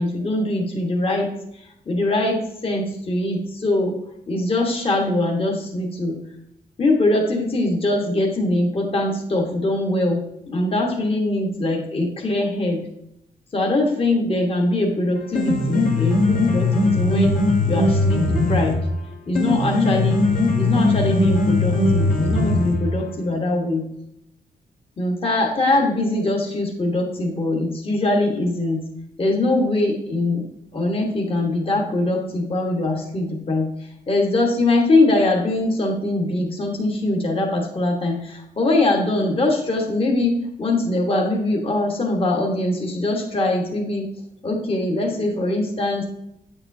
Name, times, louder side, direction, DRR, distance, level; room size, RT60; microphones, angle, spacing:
voice 1, 0.0-3.9 4.3-6.1 6.8-12.8 13.5-17.4 17.7-18.8 19.3-20.2 20.6-23.8 25.0-28.8 29.2-30.5 30.7-44.0 44.4-46.1, left 2 dB, 35° left, 0 dB, 1.4 m, -22 dB
Piano, 15.2-23.1, left 2 dB, 50° left, 1.4 m, -20 dB
8.8 x 7.1 x 2.7 m, 0.80 s
wide cardioid pair, 140°, 17 cm